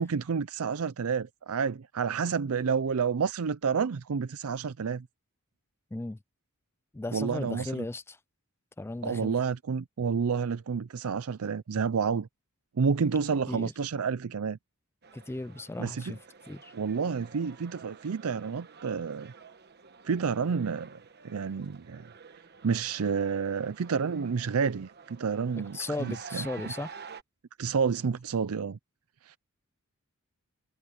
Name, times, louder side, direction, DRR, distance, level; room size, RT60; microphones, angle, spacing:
voice 1, 0.0-5.1 7.1-7.9 9.0-12.3 12.8-14.6 15.8-16.1 16.7-19.3 20.0-20.9 21.2-22.1 22.6-26.4 27.6-28.8 29.2-29.4, right 6 dB, 75° right, 0.5 m, -29 dB
voice 2, 6.9-8.2 8.8-9.4 13.5-13.7 15.1-16.2 16.5-16.7 25.7-26.9, left 2 dB, 10° left, 0.3 m, -36 dB
sound 1, 15.0-27.2, right 5 dB, 50° right, 1.2 m, -50 dB
head